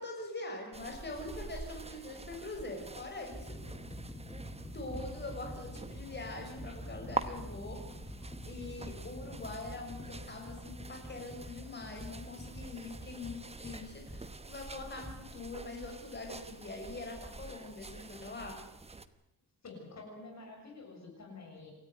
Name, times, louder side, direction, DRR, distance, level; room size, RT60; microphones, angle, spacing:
voice 1, 0.0-3.6 4.7-7.8 8.5-18.6, left 2 dB, 25° left, 2 dB, 5.9 m, -43 dB
sound 1, 0.7-19.1, right 3 dB, 15° right, 1.0 m, -46 dB
sound 2, 1.0-1.3 2.2-2.3 3.0-14.3 15.0-15.2, equal, 10° left, 2.6 m, -46 dB
voice 2, 19.6-21.7, left 3 dB, 45° left, 1 dB, 6.8 m, -48 dB
28.0 x 14.0 x 9.4 m, 0.82 s
wide cardioid pair, 170°, 38 cm